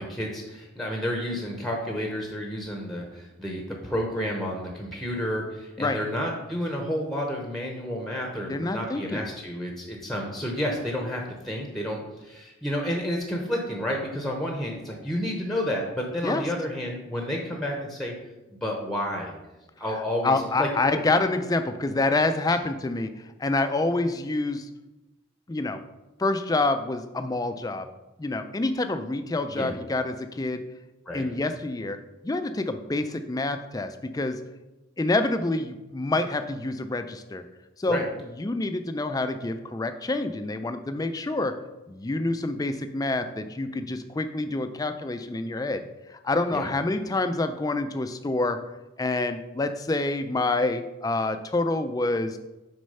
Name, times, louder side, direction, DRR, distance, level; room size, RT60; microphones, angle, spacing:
voice 1, 0.0-18.1 18.5-19.3 19.8-21.0 22.5-22.6 29.5-29.7 31.1-31.3 37.9-38.0 46.5-46.6, equal, ahead, 1 dB, 0.7 m, -30 dB
voice 2, 8.5-9.3 16.2-16.4 20.2-23.1 23.4-24.7 25.5-25.8 26.2-27.9 28.2-30.6 31.1-32.0 32.2-34.4 35.0-37.4 37.8-38.0 38.4-41.5 41.9-45.8 46.1-48.6 49.0-52.4, left 2 dB, 15° left, 8 dB, 0.3 m, -27 dB
6.3 x 4.3 x 5.5 m, 1.0 s
head